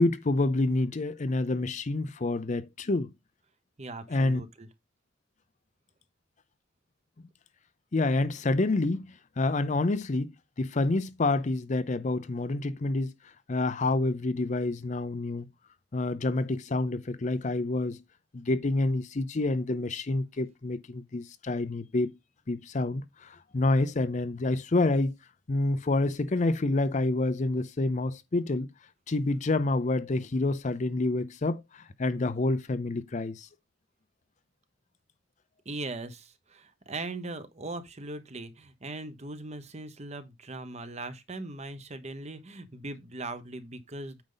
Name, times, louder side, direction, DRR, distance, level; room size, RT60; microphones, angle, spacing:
voice 1, 0.0-3.1 4.1-4.4 7.9-13.1 13.5-15.5 15.9-18.0 18.3-22.1 22.5-25.1 25.5-28.7 29.1-33.5, left 2 dB, 40° left, 0.5 m, -28 dB
voice 2, 3.8-4.7 35.6-44.2, right 2 dB, 35° right, 1.0 m, -39 dB
8.9 x 5.2 x 3.9 m
head